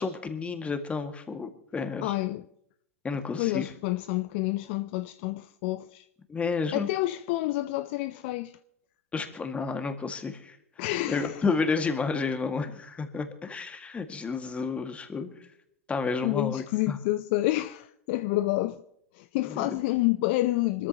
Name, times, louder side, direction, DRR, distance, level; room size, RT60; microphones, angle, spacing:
voice 1, 0.0-2.1 3.0-3.7 6.3-6.9 9.1-10.6 11.1-15.3 15.9-17.0 19.5-19.8, left 4 dB, 15° left, 1.9 m, -31 dB
voice 2, 2.0-2.5 3.4-6.0 6.7-8.5 10.8-11.4 16.2-18.8 19.2-20.9, left 17 dB, 50° left, 0.6 m, -28 dB
25.5 x 13.5 x 2.9 m
hypercardioid pair, 100°, 7 cm